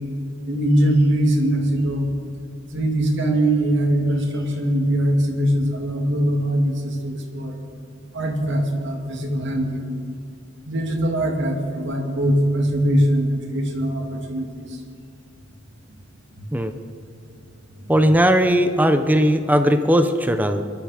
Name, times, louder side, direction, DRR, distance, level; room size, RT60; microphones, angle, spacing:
voice 1, 0.5-2.1 2.7-7.5 8.1-9.9 10.7-14.8 16.4-16.5 17.8-17.9, right 1 dB, 60° right, 1 dB, 2.5 m, -21 dB
voice 2, 17.9-20.6, equal, 10° right, 8 dB, 0.6 m, -18 dB
23.0 x 12.0 x 5.0 m, 2.6 s
head